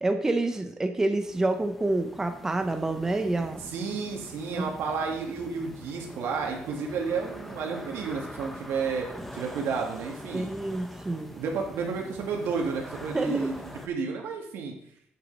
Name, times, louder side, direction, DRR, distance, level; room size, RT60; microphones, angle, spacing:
voice 1, 0.0-3.6 4.5-4.7 10.3-11.3 13.1-13.5, right 2 dB, 10° right, 6 dB, 0.6 m, -28 dB
sound 1, 1.2-13.9, equal, 5° left, 0.9 m, -44 dB
voice 2, 3.7-9.1 9.3-10.5 11.3-13.5 13.9-14.7, right 5 dB, 75° right, 1 dB, 2.1 m, -31 dB
8.3 x 7.8 x 4.1 m, 0.68 s
cardioid pair, 160°, 4 cm